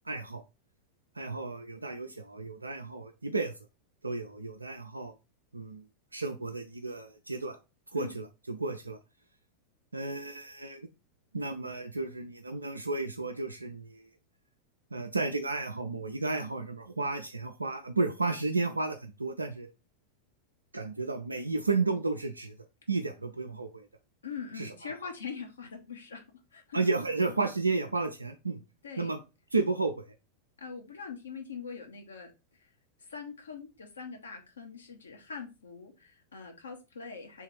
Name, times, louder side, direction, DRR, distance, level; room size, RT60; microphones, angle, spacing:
voice 1, 0.1-0.4 1.2-3.5 4.0-5.1 5.5-5.8 6.1-7.6 7.9-9.0 9.9-10.9 11.3-14.0 14.9-19.7 20.7-22.6 22.9-23.9 24.6-24.9 26.7-28.6 29.0-29.2 29.5-29.9, right 3 dB, 80° right, 4 dB, 0.4 m, -32 dB
voice 2, 24.2-26.2 26.5-26.8 27.2-27.4 28.8-29.1 30.6-32.3 33.0-37.4, left 6 dB, 70° left, 2 dB, 1.1 m, -42 dB
3.5 x 3.2 x 4.6 m, 0.28 s
figure-of-eight pair, 90°, 0 cm